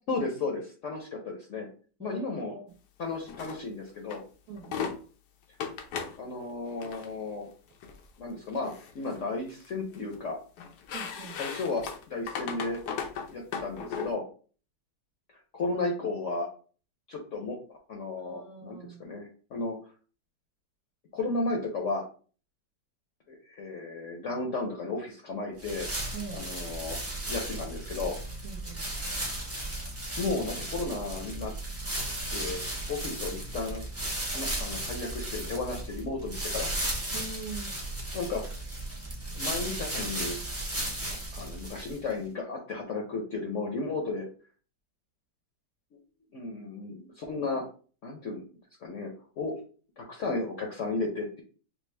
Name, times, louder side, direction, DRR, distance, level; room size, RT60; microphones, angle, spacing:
voice 1, 0.1-1.7 2.0-2.5 3.0-4.2 6.2-7.5 8.2-10.4 11.3-12.8 13.3-14.2 15.5-16.5 17.1-17.6 17.9-19.8 21.1-22.1 23.3-25.9 26.3-27.0 27.3-28.2 30.2-31.5 32.3-32.6 32.9-33.8 34.3-36.7 38.1-38.4 39.3-40.4 41.1-44.3 46.3-47.6 48.0-48.4 48.8-49.5 50.0-51.4, left 3 dB, 55° left, 1 dB, 1.0 m, -34 dB
voice 2, 2.0-2.7 4.5-4.9 10.9-11.4 18.2-19.0 26.1-26.4 28.4-28.9 37.1-37.8, right 5 dB, 60° right, -1 dB, 1.0 m, -42 dB
sound 1, 3.3-3.6 4.1-4.2 4.6-5.0 5.6-6.2 6.7-7.1 7.8-8.0 8.5-9.2 9.5-10.2 10.6-14.1, left 6 dB, 80° left, 1.2 m, -37 dB
sound 2, 25.6-42.1, right 1 dB, 15° right, 0.6 m, -35 dB
5.9 x 2.0 x 3.3 m, 0.40 s
omnidirectional pair, 1.8 m